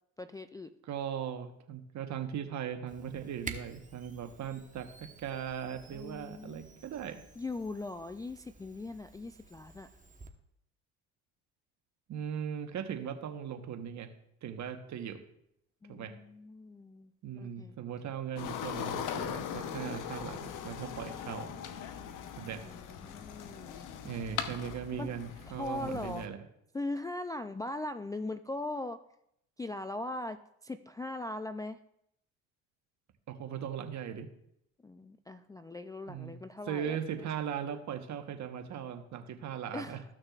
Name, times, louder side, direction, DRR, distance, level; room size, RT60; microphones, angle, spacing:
voice 1, 0.2-0.7 5.9-6.6 7.4-9.9 15.8-17.7 22.6-23.9 25.0-25.1 25.6-26.3 26.7-29.0 29.6-30.4 30.6-31.8 34.8-37.3 39.7-40.0, left 2 dB, 10° left, 7 dB, 0.3 m, -40 dB
voice 2, 0.8-7.2 12.1-14.1 14.4-15.2 15.9-16.2 17.2-21.6 22.4-22.7 24.0-26.4 33.3-34.3 36.1-36.4 36.7-40.0, right 8 dB, 50° right, 7 dB, 1.2 m, -39 dB
Camera, 2.9-10.3, right 4 dB, 20° right, 1.2 m, -50 dB
sound 1, 18.4-26.3, left 8 dB, 60° left, 1.0 m, -40 dB
14.5 x 6.3 x 2.4 m, 0.76 s
supercardioid pair, 80°, 36 cm